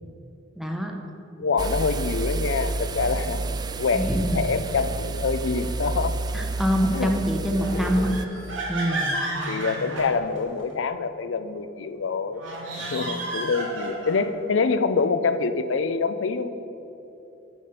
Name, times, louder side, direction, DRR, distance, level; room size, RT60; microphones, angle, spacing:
voice 1, 0.6-0.9 3.9-4.4 6.3-8.1 8.7-9.2, equal, ahead, 2 dB, 0.9 m, -25 dB
voice 2, 1.4-3.4 3.8-4.1 4.3-6.2 6.9-7.1 7.5-7.9 9.5-12.4 12.8-16.5, left 4 dB, 75° left, 11 dB, 0.5 m, -26 dB
sound 1, 1.6-8.3, right 3 dB, 20° right, 0.3 m, -30 dB
sound 2, 7.6-10.7 12.3-14.3, right 1 dB, 85° right, 1.9 m, -32 dB
10.5 x 5.1 x 5.7 m, 3.0 s
head